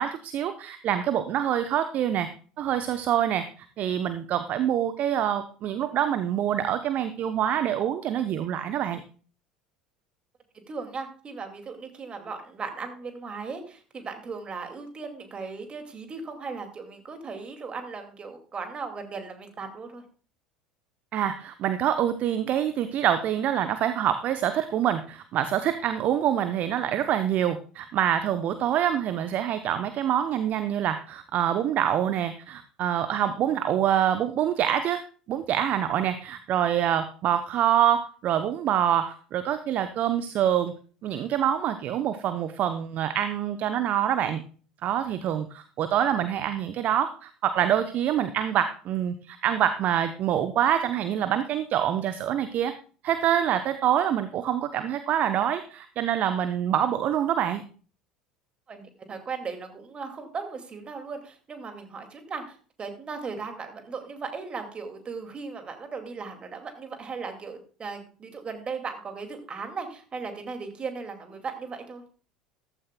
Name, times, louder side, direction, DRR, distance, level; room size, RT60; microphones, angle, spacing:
voice 1, 0.0-2.3 2.6-9.0 21.1-35.0 35.3-40.7 41.0-44.4 44.8-52.7 53.0-57.6, right 10 dB, 45° right, 11 dB, 0.8 m, -26 dB
voice 2, 10.7-20.0 58.7-72.0, right 4 dB, 30° right, 6 dB, 2.3 m, -37 dB
14.5 x 12.5 x 2.3 m, 0.40 s
figure-of-eight pair, 70°, 4 cm